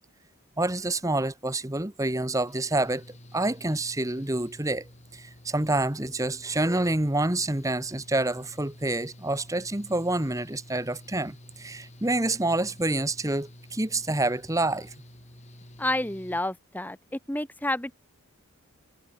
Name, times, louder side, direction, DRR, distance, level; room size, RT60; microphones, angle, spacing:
voice 1, 0.6-3.0 3.3-4.8 5.1-14.9, right 2 dB, 15° right, 1.1 m, -27 dB
Engine / Mechanical fan, 2.5-16.4, left 1 dB, 30° left, 6.8 m, -50 dB
voice 2, 15.8-17.0 17.3-18.0, left 1 dB, 10° left, 1.4 m, -29 dB
head